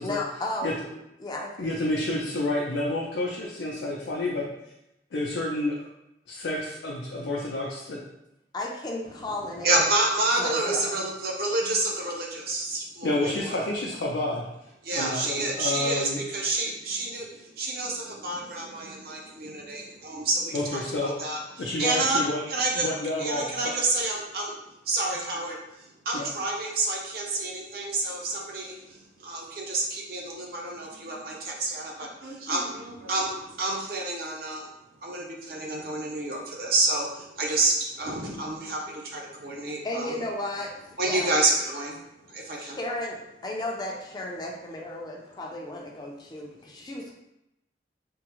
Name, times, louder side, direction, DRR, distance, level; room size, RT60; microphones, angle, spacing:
voice 1, 0.0-2.0 8.5-9.8 10.4-11.0 19.6-19.7 39.8-40.7 41.0-41.3 42.6-47.1, left 1 dB, 25° left, -1 dB, 0.4 m, -34 dB
voice 2, 1.6-4.5 5.1-5.8 6.3-8.0 13.0-14.4 14.9-16.2 20.5-21.2 21.6-22.4 22.7-23.7 26.1-26.3, left 2 dB, 85° left, -3 dB, 0.5 m, -29 dB
voice 3, 9.6-13.6 14.8-22.2 22.5-22.9 23.2-24.6 24.8-34.7 35.0-40.2 41.0-42.0 42.3-42.8, right 2 dB, 55° right, -1 dB, 0.6 m, -29 dB
3.5 x 2.0 x 2.9 m, 0.87 s
head